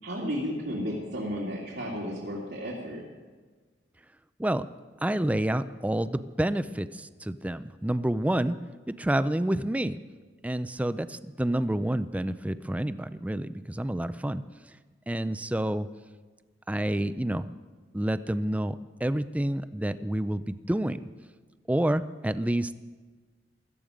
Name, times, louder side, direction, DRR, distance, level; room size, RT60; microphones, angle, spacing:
voice 1, 0.0-3.0, equal, 90° right, -6 dB, 2.7 m, -33 dB
voice 2, 5.0-8.6 9.0-10.0 10.4-14.4 15.1-15.9 16.7-17.5 17.9-18.8 19.0-21.0 21.7-22.7, right 1 dB, 10° right, 13 dB, 0.4 m, -28 dB
16.5 x 13.5 x 5.1 m, 1.4 s
head